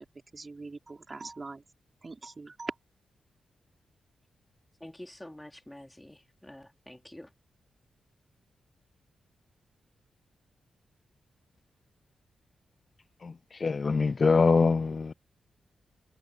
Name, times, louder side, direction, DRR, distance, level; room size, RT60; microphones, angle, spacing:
voice 1, 0.3-1.6 2.0-2.7, right 3 dB, 40° right, 4.8 m, -41 dB
voice 2, 4.8-7.3, left 1 dB, 10° left, 4.2 m, -47 dB
voice 3, 13.6-15.1, left 4 dB, 50° left, 0.6 m, -23 dB
cardioid pair, 50°, 0 cm